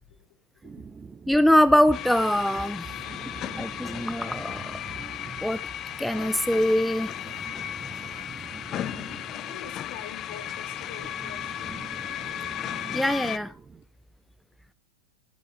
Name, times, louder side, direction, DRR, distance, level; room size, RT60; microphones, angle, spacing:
sound 1, 0.6-13.8, right 5 dB, 15° right, 1.1 m, -45 dB
voice 1, 1.3-2.8 3.6-4.7 5.4-5.6 6.0-7.1 12.9-13.5, equal, ahead, 0.6 m, -22 dB
sound 2, 1.9-13.4, left 11 dB, 30° left, 0.8 m, -35 dB
voice 2, 2.8-4.3 9.1-11.5, left 9 dB, 45° left, 2.3 m, -46 dB
16.5 x 9.3 x 3.2 m
figure-of-eight pair, 90°, 0 cm